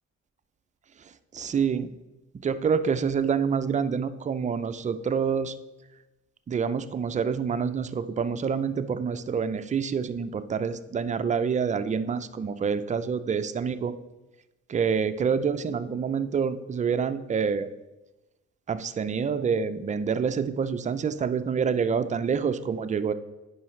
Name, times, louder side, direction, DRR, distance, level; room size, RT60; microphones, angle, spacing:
voice 1, 1.3-2.0 2.4-5.5 6.5-13.9 14.7-17.7 18.7-23.1, right 6 dB, 25° right, 11 dB, 0.4 m, -27 dB
10.0 x 4.7 x 3.1 m, 1.0 s
cardioid pair, 90°, 30 cm